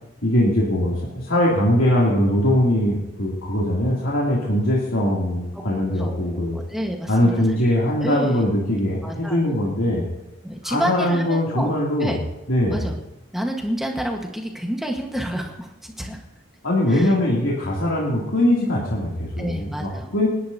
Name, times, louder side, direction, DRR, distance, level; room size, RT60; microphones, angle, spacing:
voice 1, 0.2-6.6 7.1-10.0 10.6-12.2 12.5-12.8 16.6-20.3, left 1 dB, 80° left, -5 dB, 2.8 m, -21 dB
voice 2, 6.0-8.5 9.0-9.6 10.4-12.2 12.7-12.9 13.3-16.2 16.9-17.1 19.4-20.1, right 1 dB, ahead, 1 dB, 1.3 m, -29 dB
29.0 x 10.5 x 2.8 m, 0.98 s
head